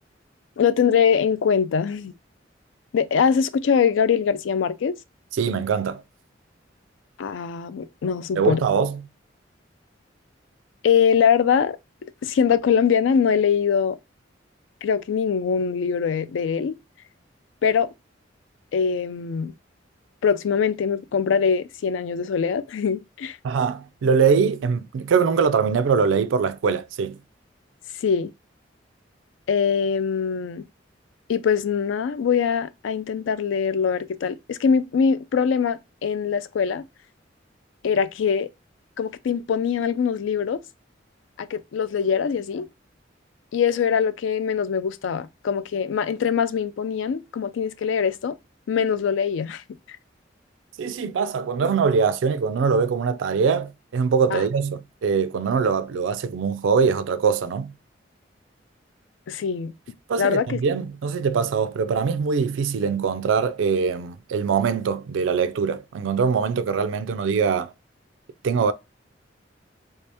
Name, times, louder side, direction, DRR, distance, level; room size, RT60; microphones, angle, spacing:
voice 1, 0.6-2.1 2.9-5.0 7.2-8.6 10.8-11.8 12.2-14.0 14.8-16.8 17.6-17.9 18.7-19.5 20.2-23.4 28.0-28.3 29.5-30.6 31.3-36.8 37.8-38.5 39.0-40.6 41.4-42.7 43.5-48.4 48.7-49.6 54.3-54.4 59.3-59.7 60.2-60.6, left 7 dB, 80° left, 0.4 m, -22 dB
voice 2, 5.4-6.0 8.4-9.1 23.4-27.2 50.8-57.7 60.1-67.7 68.4-68.7, right 5 dB, 85° right, 0.4 m, -22 dB
3.2 x 2.8 x 3.3 m
head